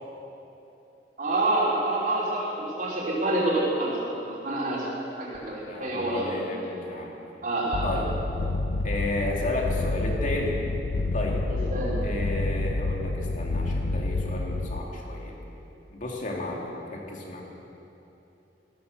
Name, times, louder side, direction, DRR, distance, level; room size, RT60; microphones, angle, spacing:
voice 1, 1.2-4.0 4.2-4.9 5.2-6.6 7.4-7.9 11.5-12.0, right 2 dB, 50° right, -6 dB, 3.3 m, -27 dB
voice 2, 5.7-7.1 7.8-8.1 8.8-10.6 11.1-11.4 12.0-15.3 15.9-17.4, left 2 dB, 45° left, -1 dB, 2.6 m, -32 dB
sound 1, 7.7-14.8, left 2 dB, 90° left, 0.6 m, -28 dB
14.0 x 14.0 x 6.6 m, 2.9 s
head